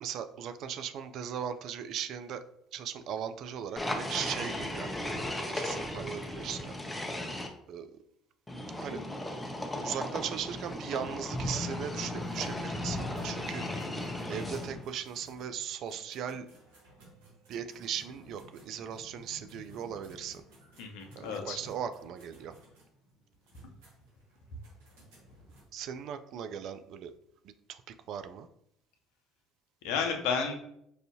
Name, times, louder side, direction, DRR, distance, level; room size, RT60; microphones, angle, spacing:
voice 1, 0.0-2.4 2.7-5.2 5.5-7.1 7.7-7.9 8.8-9.0 9.8-13.6 14.3-16.5 17.5-20.4 21.2-22.5 25.7-27.1 27.4-27.8 28.1-28.5, right 8 dB, 60° right, 10 dB, 0.3 m, -38 dB
sound 1, 3.8-7.5 8.5-14.9, left 1 dB, 15° left, 0.7 m, -36 dB
sound 2, 12.2-25.6, equal, 85° right, 1.2 m, -55 dB
voice 2, 20.8-21.6 29.8-30.5, left 6 dB, 75° left, 3 dB, 0.6 m, -32 dB
4.7 x 2.6 x 2.7 m, 0.73 s
hypercardioid pair, 65°, 0 cm